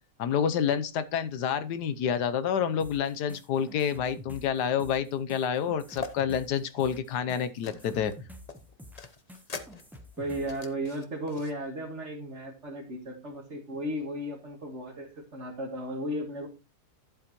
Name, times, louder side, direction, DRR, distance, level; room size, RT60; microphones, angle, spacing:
voice 1, 0.2-8.1, left 8 dB, 85° left, 1.4 m, -28 dB
sound 1, 2.8-10.6, left 1 dB, ahead, 0.6 m, -48 dB
sound 2, 5.9-6.1 6.6-8.2 8.5-11.5, left 4 dB, 35° left, 0.7 m, -43 dB
voice 2, 10.2-16.5, equal, 45° right, 2.0 m, -35 dB
11.5 x 7.7 x 3.0 m
omnidirectional pair, 1.7 m